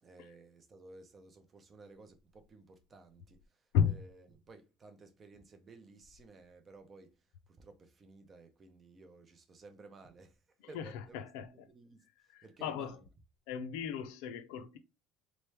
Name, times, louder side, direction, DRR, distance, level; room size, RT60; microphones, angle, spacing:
voice 1, 0.0-7.2 7.5-10.4 10.7-11.2 11.5-12.1 12.4-13.0, right 3 dB, 20° right, 0.6 m, -56 dB
voice 2, 3.7-4.0 10.6-11.7 12.3-13.0 13.5-14.8, left 8 dB, 80° left, 0.5 m, -35 dB
3.7 x 3.2 x 3.3 m
cardioid pair, 170°, 0 cm